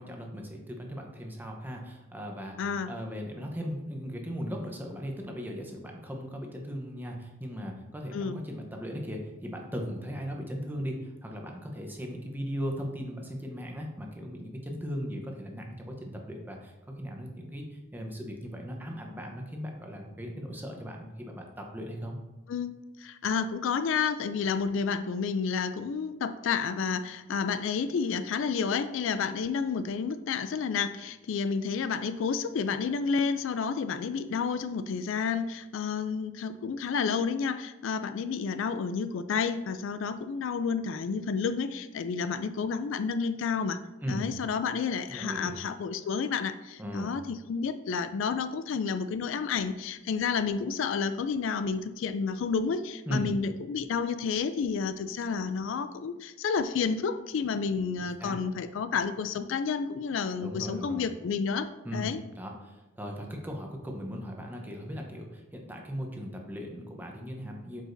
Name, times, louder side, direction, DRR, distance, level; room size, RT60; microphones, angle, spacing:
voice 1, 0.0-22.2 44.0-44.3 45.1-45.6 46.8-47.1 53.1-53.3 58.2-58.4 60.4-61.1 61.8-67.8, equal, 10° right, 1 dB, 0.8 m, -38 dB
voice 2, 2.6-2.9 8.1-8.4 22.5-22.7 23.0-43.8 44.1-61.7 61.9-62.2, left 5 dB, 70° left, 11 dB, 0.3 m, -30 dB
7.9 x 4.9 x 2.6 m, 1.1 s
head